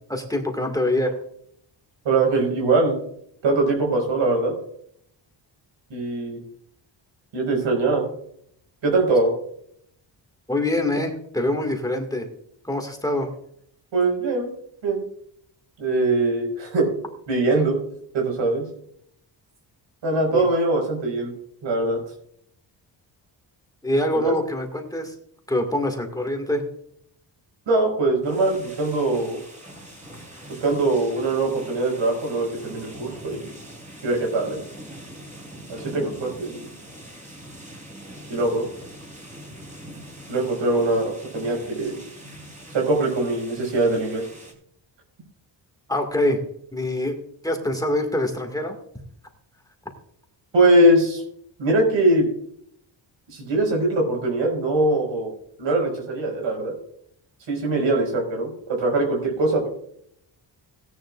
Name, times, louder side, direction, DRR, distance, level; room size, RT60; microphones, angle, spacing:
voice 1, 0.1-1.1 10.5-12.3 12.6-13.3 20.3-20.5 23.8-25.1 25.5-26.6 45.9-46.4 46.7-47.1 47.4-48.7, left 1 dB, 10° left, 3 dB, 2.0 m, -24 dB
voice 2, 2.1-3.0 3.4-4.5 5.9-6.4 7.3-8.0 8.8-9.3 13.9-14.5 14.8-15.1 15.8-16.9 17.3-17.8 18.1-18.6 20.0-21.3 21.6-22.0 24.1-24.3 27.7-29.4 30.5-33.5 34.0-34.6 35.7-36.7 38.3-38.7 40.3-42.0 42.7-44.2 50.5-51.2 51.6-52.3 53.3-55.3 55.6-56.7 57.5-59.7, right 2 dB, 75° right, 1 dB, 5.3 m, -22 dB
sound 1, 28.2-44.5, right 1 dB, 15° right, 3.9 m, -42 dB
17.0 x 10.5 x 2.5 m, 0.69 s
cardioid pair, 115°, 45 cm